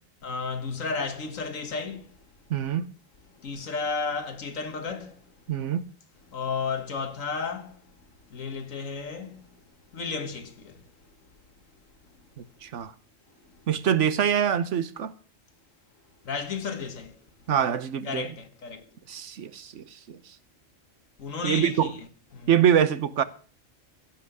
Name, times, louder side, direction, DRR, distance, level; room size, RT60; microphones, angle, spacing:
voice 1, 0.2-2.2 3.3-5.2 6.3-7.8 8.3-9.5 9.9-10.8 16.2-17.2 18.0-18.8 21.2-22.0 22.3-22.5, left 5 dB, 80° left, 2.0 m, -33 dB
voice 2, 2.5-2.9 5.5-5.9 12.6-12.9 13.7-15.1 17.5-18.3 19.1-20.2 21.4-21.9 22.5-23.2, right 9 dB, 70° right, 1.2 m, -24 dB
16.0 x 5.9 x 7.9 m
omnidirectional pair, 1.4 m